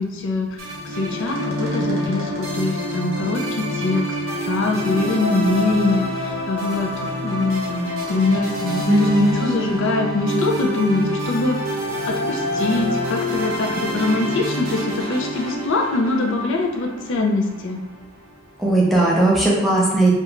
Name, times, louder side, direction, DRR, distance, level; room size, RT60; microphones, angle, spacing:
voice 1, 0.0-4.1 4.4-6.9 7.2-11.6 12.1-17.8, left 2 dB, 65° left, 1 dB, 0.4 m, -23 dB
sound 1, 0.6-18.0, equal, 90° right, 0.7 m, -27 dB
voice 2, 8.9-9.5 18.6-20.1, right 2 dB, ahead, -5 dB, 0.6 m, -17 dB
2.5 x 2.2 x 2.9 m, 0.98 s
head